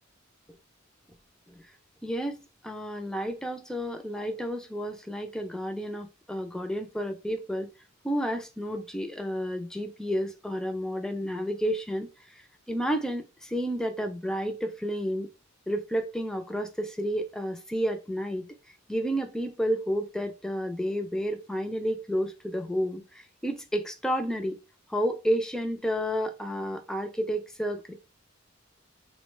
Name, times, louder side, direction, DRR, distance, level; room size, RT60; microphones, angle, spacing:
voice 1, 2.0-2.4 2.6-7.7 8.0-12.1 12.7-15.3 15.7-18.5 18.9-24.5 24.9-27.9, equal, 5° left, 0.3 m, -31 dB
3.5 x 2.1 x 3.1 m
head